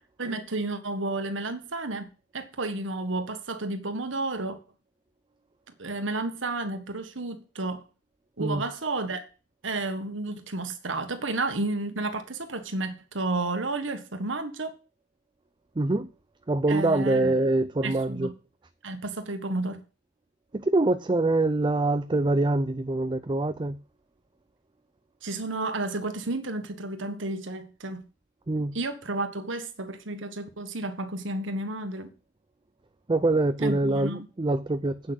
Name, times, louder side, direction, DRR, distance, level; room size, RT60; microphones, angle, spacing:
voice 1, 0.2-2.1 2.3-4.6 5.8-7.8 8.4-9.3 9.6-14.7 16.7-17.3 17.8-18.3 18.8-19.8 25.2-28.0 28.7-32.1 33.6-34.2, right 2 dB, 90° right, 1.6 m, -31 dB
voice 2, 15.8-16.1 16.5-18.3 20.5-23.8 28.5-28.7 33.1-35.1, right 2 dB, 25° right, 0.5 m, -24 dB
8.6 x 6.1 x 8.0 m
head